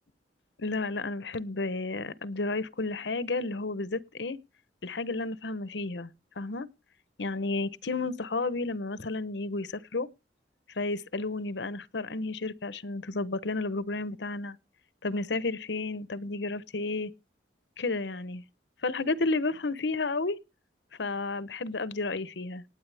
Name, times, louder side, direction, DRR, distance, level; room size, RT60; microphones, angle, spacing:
voice 1, 0.6-4.4 4.8-6.1 6.4-6.7 7.2-10.1 10.7-14.6 15.0-17.1 17.8-18.4 18.8-20.4 21.0-22.6, left 3 dB, 70° left, 0.9 m, -32 dB
19.0 x 8.9 x 3.4 m
head